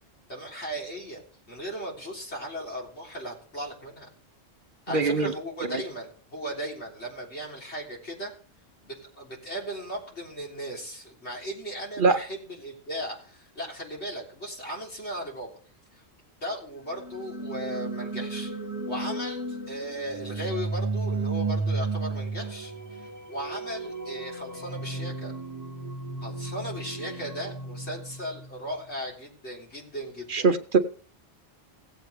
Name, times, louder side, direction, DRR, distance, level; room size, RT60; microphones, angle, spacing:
voice 1, 0.3-1.2 1.5-4.1 4.9-8.3 8.8-15.5 16.4-18.6 18.9-25.3 26.2-30.5, equal, 80° left, -3 dB, 3.9 m, -37 dB
voice 2, 4.9-5.3 5.7-5.8 12.0-12.2 30.3-30.8, right 4 dB, 55° right, 9 dB, 0.9 m, -22 dB
sound 1, 16.9-28.8, right 3 dB, 20° right, 1.0 m, -34 dB
17.0 x 8.0 x 3.5 m, 0.42 s
omnidirectional pair, 1.1 m